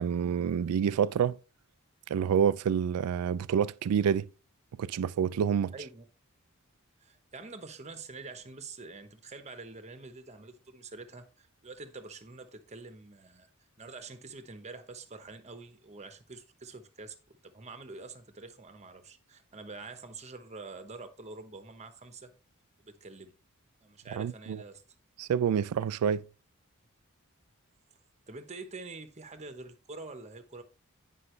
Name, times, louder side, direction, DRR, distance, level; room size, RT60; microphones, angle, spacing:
voice 1, 0.0-1.4 2.1-4.3 4.8-5.7 24.2-24.6 25.2-26.2, right 7 dB, 85° right, 0.3 m, -28 dB
voice 2, 5.7-6.0 7.0-13.5 13.8-22.3 22.8-23.3 23.8-24.8 28.3-30.6, right 3 dB, 30° right, 0.9 m, -46 dB
9.7 x 5.4 x 3.2 m
head